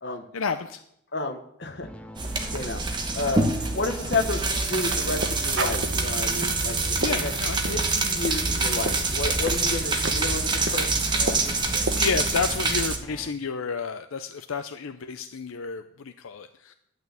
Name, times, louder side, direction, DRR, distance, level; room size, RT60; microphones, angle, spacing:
voice 1, 0.3-0.8 7.0-7.8 12.0-16.7, left 5 dB, 80° left, 8 dB, 0.6 m, -31 dB
voice 2, 1.1-1.9 2.3-6.8 7.1-7.3 7.7-11.9, left 2 dB, 55° left, 6 dB, 1.2 m, -31 dB
sound 1, 1.8-13.3, equal, 5° left, 0.6 m, -41 dB
sound 2, 2.2-13.0, right 3 dB, 20° right, 1.1 m, -26 dB
sound 3, 4.7-12.3, right 2 dB, 60° right, 1.0 m, -35 dB
11.0 x 6.3 x 8.2 m, 0.73 s
head